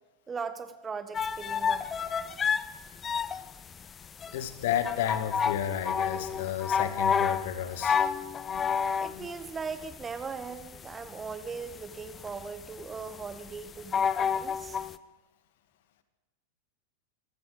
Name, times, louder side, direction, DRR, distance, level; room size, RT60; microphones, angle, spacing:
voice 1, 0.3-1.9 4.3-4.4 9.0-14.8, right 5 dB, 15° right, 11 dB, 1.6 m, -39 dB
sound 1, 1.1-15.0, left 7 dB, 20° left, 0.9 m, -30 dB
voice 2, 4.3-8.0 8.5-8.7 9.1-9.3, left 10 dB, 55° left, 10 dB, 2.2 m, -32 dB
26.5 x 19.5 x 5.1 m, 1.2 s
figure-of-eight pair, 90°, 0 cm